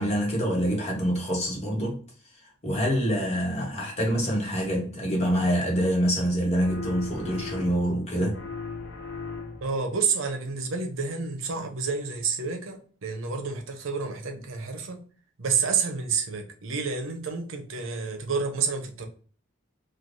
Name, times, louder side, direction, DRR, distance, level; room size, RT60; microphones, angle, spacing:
voice 1, 0.0-2.0 2.6-8.4, equal, 35° left, 1.0 m, -26 dB
sound 1, 6.6-8.0 8.3-9.8, left 4 dB, 60° left, 0.5 m, -37 dB
voice 2, 9.6-15.0 15.4-19.1, right 5 dB, 85° right, 0.7 m, -29 dB
3.2 x 2.3 x 2.6 m
head